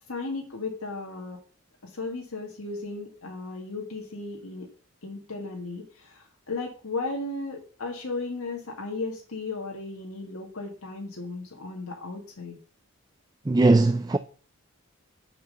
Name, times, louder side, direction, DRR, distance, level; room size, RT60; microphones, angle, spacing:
voice 1, 0.1-1.4 1.8-4.7 5.0-12.6, left 3 dB, 90° left, 1.6 m, -35 dB
voice 2, 13.5-14.2, right 2 dB, 20° right, 0.3 m, -19 dB
6.7 x 6.0 x 6.7 m
head